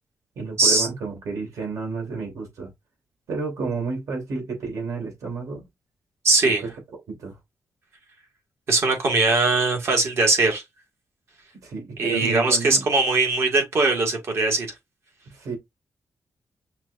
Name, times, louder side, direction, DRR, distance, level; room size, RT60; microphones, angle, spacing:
voice 1, 0.4-2.7 3.3-5.6 6.4-6.7 7.1-7.4 11.5-12.9 15.3-15.6, right 4 dB, 70° right, 2.4 m, -31 dB
voice 2, 6.2-6.6 8.7-10.6 12.0-14.7, right 3 dB, 50° right, 1.7 m, -20 dB
5.9 x 2.4 x 2.6 m
wide cardioid pair, 130°, 5 cm